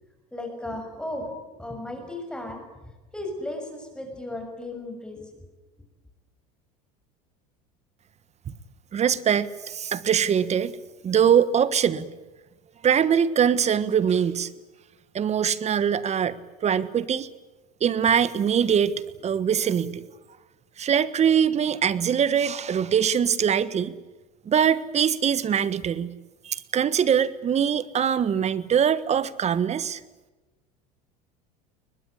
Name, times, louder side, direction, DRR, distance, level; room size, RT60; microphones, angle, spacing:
voice 1, 0.3-2.6 3.1-5.2, left 1 dB, 5° left, 3 dB, 6.5 m, -35 dB
voice 2, 8.9-10.7 11.0-12.1 12.8-14.5 15.1-16.3 16.6-17.3 17.8-18.9 19.2-20.0 20.8-23.9 24.5-26.1 26.4-30.0, right 8 dB, 35° right, 16 dB, 1.4 m, -22 dB
23.0 x 20.0 x 9.9 m, 1.2 s
supercardioid pair, 95°, 20 cm